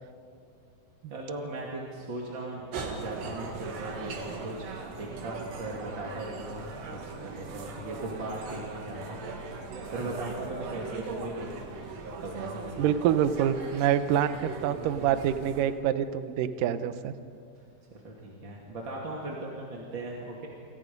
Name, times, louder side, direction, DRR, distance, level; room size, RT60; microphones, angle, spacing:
voice 1, 1.1-6.7 7.2-9.2 9.6-11.7 12.2-12.9 17.9-20.5, right 2 dB, 35° right, -2 dB, 2.5 m, -38 dB
sound 1, 2.7-15.6, right 4 dB, 90° right, 4.5 m, -40 dB
voice 2, 12.8-17.1, right 9 dB, 70° right, 10 dB, 2.2 m, -26 dB
28.5 x 26.0 x 5.3 m, 2.5 s
omnidirectional pair, 4.7 m